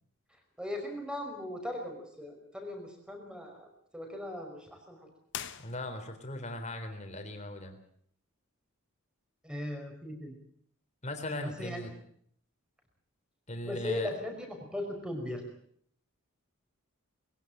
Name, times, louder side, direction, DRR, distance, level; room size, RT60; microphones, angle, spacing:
voice 1, 0.6-5.1 9.4-10.4 11.4-11.9 13.6-15.5, left 1 dB, 5° right, 3 dB, 5.4 m, -38 dB
sound 1, 5.3-6.3, left 9 dB, 55° left, 1.3 m, -43 dB
voice 2, 5.6-7.8 11.0-11.9 13.5-14.1, left 1 dB, 30° left, 6 dB, 3.6 m, -38 dB
22.0 x 16.5 x 8.9 m, 0.64 s
head